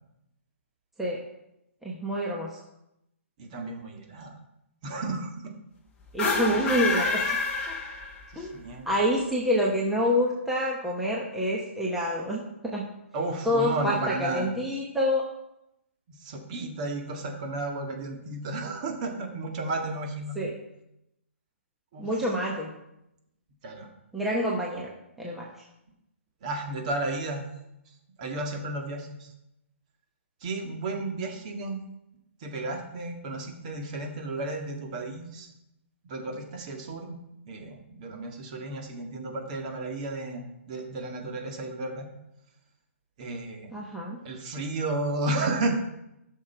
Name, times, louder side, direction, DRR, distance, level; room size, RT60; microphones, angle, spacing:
voice 1, 1.8-2.5 6.1-7.2 8.4-12.9 13.4-15.2 20.4-20.5 22.0-22.7 24.1-24.9 25.2-25.4 43.7-44.2, equal, 5° right, -4 dB, 1.0 m, -27 dB
voice 2, 3.4-4.4 4.8-5.5 6.6-6.7 8.3-8.9 13.1-14.5 16.2-20.4 21.9-22.3 23.6-23.9 26.4-27.5 28.2-29.3 30.4-31.8 32.4-35.5 36.0-37.2 37.5-42.1 43.2-43.8 44.2-45.8, right 2 dB, 30° right, 2 dB, 1.7 m, -33 dB
sound 1, 6.1-8.4, left 4 dB, 15° left, 1.4 m, -28 dB
13.0 x 6.5 x 4.5 m, 0.86 s
hypercardioid pair, 160°, 7 cm